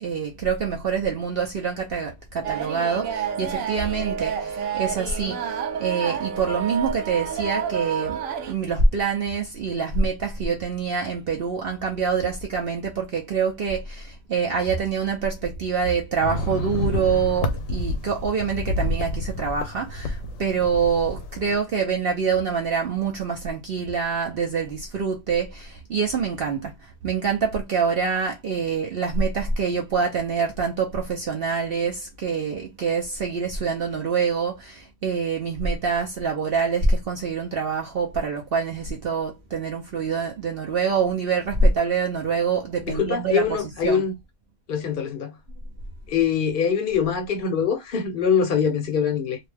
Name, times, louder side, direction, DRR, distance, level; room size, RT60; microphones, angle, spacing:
voice 1, 0.0-43.4 43.8-44.0, right 5 dB, 55° right, 0.7 m, -25 dB
sound 1, 2.4-8.5, right 7 dB, 80° right, 1.0 m, -29 dB
sound 2, 16.2-21.6, left 1 dB, 75° left, 1.0 m, -29 dB
voice 2, 42.8-44.1 44.7-45.3 46.1-49.4, left 7 dB, 50° left, 0.7 m, -23 dB
2.6 x 2.1 x 3.2 m
omnidirectional pair, 1.4 m